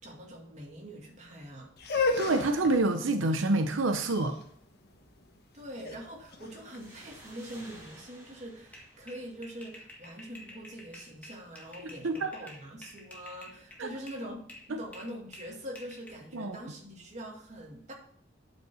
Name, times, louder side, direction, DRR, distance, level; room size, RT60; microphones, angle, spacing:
voice 1, 0.0-1.7 5.5-17.9, equal, 35° right, 2.2 m, -44 dB
sound 1, 1.8-7.7, left 3 dB, 55° left, 1.2 m, -35 dB
voice 2, 2.2-4.3 11.8-12.3 13.8-13.9 14.7-14.8 16.3-16.6, right 2 dB, 90° right, 0.7 m, -27 dB
sound 2, 6.7-10.1, right 1 dB, 15° right, 5.2 m, -54 dB
sound 3, 8.7-14.2 14.5-16.1, left 1 dB, 10° left, 1.7 m, -50 dB
9.1 x 5.3 x 6.9 m
head